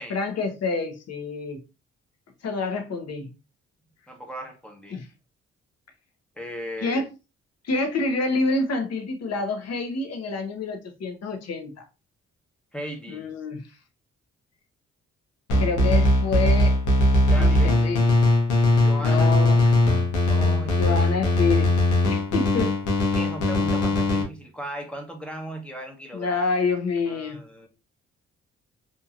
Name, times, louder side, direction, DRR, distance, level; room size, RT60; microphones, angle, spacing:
voice 1, 0.1-1.6 2.4-3.3 4.9-5.1 6.8-7.1 7.6-11.8 13.1-13.6 15.6-16.8 17.4-18.0 19.0-19.6 20.8-21.7 22.1-22.8 26.1-27.4, left 3 dB, 60° left, 0.9 m, -27 dB
voice 2, 4.1-5.0 6.4-7.0 12.7-13.3 17.3-17.8 18.5-19.3 20.3-21.0 23.1-26.4 27.1-27.7, equal, 5° left, 0.9 m, -37 dB
sound 1, 15.5-24.2, left 2 dB, 85° left, 1.0 m, -20 dB
2.8 x 2.7 x 2.4 m
supercardioid pair, 65°, 29 cm